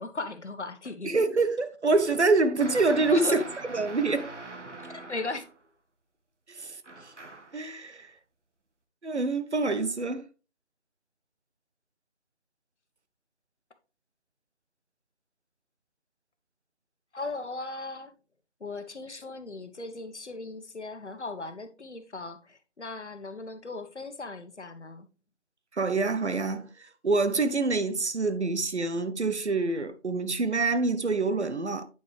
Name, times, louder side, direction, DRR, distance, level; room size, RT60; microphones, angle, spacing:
voice 1, 0.0-1.1 3.1-3.5 4.8-5.5 17.1-18.1 18.6-25.1, left 3 dB, 75° left, 1.3 m, -37 dB
voice 2, 1.0-3.4 3.7-4.3 6.5-6.8 7.5-8.1 9.0-10.3 25.7-31.8, right 3 dB, 70° right, 1.1 m, -26 dB
sound 1, 2.6-5.6 6.8-7.6, right 2 dB, 85° right, 1.5 m, -42 dB
9.1 x 5.6 x 3.3 m
figure-of-eight pair, 170°, 35 cm